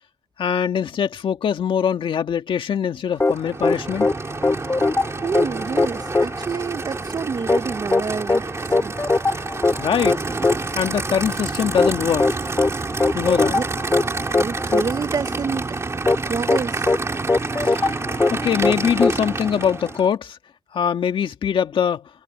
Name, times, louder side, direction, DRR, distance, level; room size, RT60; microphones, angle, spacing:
voice 1, 0.4-4.1 9.8-10.2 10.7-12.4 13.1-13.6 17.6-17.9 18.3-20.4 20.7-22.1, left 8 dB, 75° left, 1.8 m, -23 dB
sound 1, 3.2-20.1, left 3 dB, 25° left, 4.3 m, -22 dB
Aircraft / Idling, 3.2-20.1, right 3 dB, 30° right, 2.6 m, -29 dB
voice 2, 5.2-8.9 12.9-13.2 13.5-13.6 14.3-15.6 16.3-16.9, right 5 dB, 50° right, 1.1 m, -28 dB
cardioid pair, 100°, 9 cm